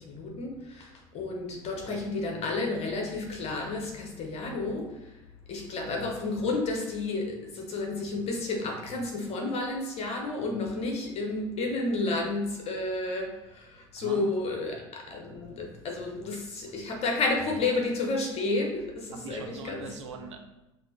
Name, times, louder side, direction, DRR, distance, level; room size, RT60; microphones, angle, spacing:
voice 1, 0.0-5.1 5.5-19.9, left 2 dB, 40° left, 2 dB, 1.2 m, -31 dB
voice 2, 14.0-14.3 19.1-20.4, right 5 dB, 70° right, 3 dB, 0.7 m, -42 dB
5.6 x 2.8 x 3.3 m, 0.96 s
figure-of-eight pair, 65°, 16 cm